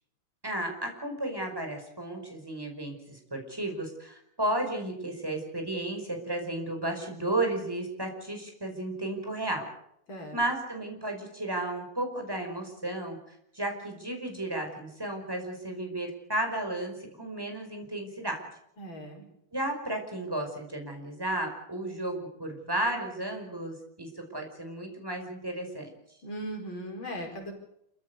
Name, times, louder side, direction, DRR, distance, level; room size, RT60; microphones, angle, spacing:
voice 1, 0.4-9.7 10.3-18.5 19.5-25.9, right 1 dB, 10° right, 3 dB, 5.0 m, -33 dB
voice 2, 18.8-19.2 26.2-27.5, equal, 65° left, 2 dB, 5.4 m, -38 dB
27.5 x 15.0 x 8.2 m, 0.77 s
omnidirectional pair, 2.4 m